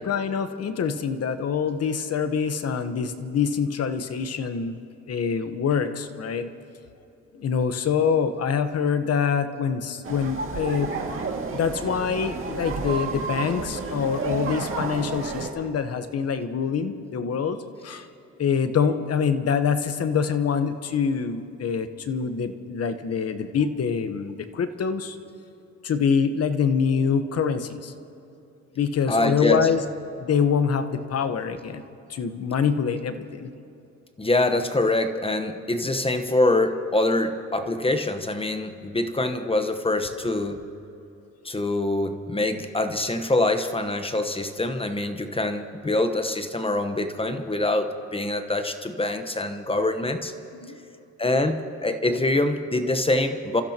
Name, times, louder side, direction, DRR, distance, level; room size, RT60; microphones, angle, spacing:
voice 1, 0.0-4.8 5.1-6.5 7.4-10.9 11.5-17.6 17.8-18.0 18.4-25.2 25.8-27.9 28.8-29.8 30.2-31.8 32.1-33.5 50.5-50.8, left 6 dB, 55° left, 9 dB, 1.1 m, -25 dB
sound 1, 10.0-15.5, right 4 dB, 45° right, 2.2 m, -31 dB
voice 2, 29.1-29.7 34.2-40.6 41.4-50.3 51.2-53.6, left 2 dB, 20° left, 8 dB, 1.1 m, -24 dB
29.0 x 15.0 x 2.9 m, 2.9 s
cardioid pair, 90°, 30 cm